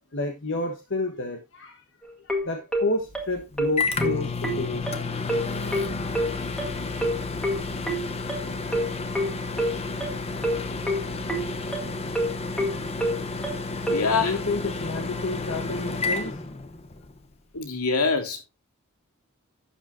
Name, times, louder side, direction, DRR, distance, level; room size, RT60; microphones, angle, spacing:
voice 1, 0.1-1.8 2.2-4.9 14.2-16.3, left 2 dB, 55° left, 1.3 m, -30 dB
sound 1, 2.0-14.1, equal, 5° left, 1.7 m, -27 dB
Microwave oven, 3.1-17.1, left 3 dB, 30° left, 0.9 m, -31 dB
voice 2, 13.9-14.4 17.5-18.4, left 4 dB, 85° left, 2.3 m, -24 dB
11.5 x 7.6 x 2.6 m
head